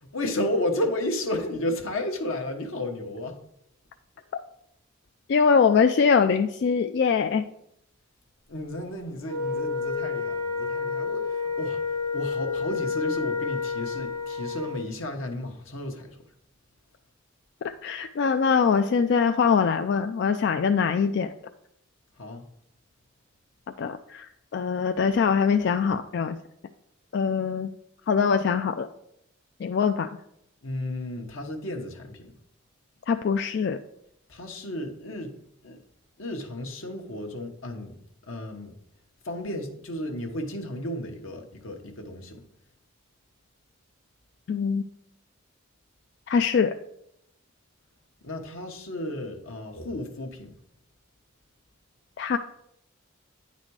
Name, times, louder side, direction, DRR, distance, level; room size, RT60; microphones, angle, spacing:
voice 1, 0.0-3.4 8.5-16.2 22.2-22.5 30.6-32.3 34.3-35.3 35.6-35.8 36.2-38.0 38.3-38.7 39.2-42.4 48.2-50.5, left 1 dB, 90° left, 3 dB, 1.1 m, -33 dB
voice 2, 5.3-7.4 17.8-21.3 23.8-24.3 24.5-26.4 27.1-27.7 28.1-28.9 29.6-30.1 33.1-33.8 44.5-44.8 46.3-46.8 52.2-52.4, left 6 dB, 55° left, 7 dB, 0.3 m, -23 dB
Wind instrument woodwind instrument, 9.2-14.8, left 5 dB, 20° left, 1.5 m, -30 dB
9.6 x 4.1 x 4.7 m, 0.75 s
head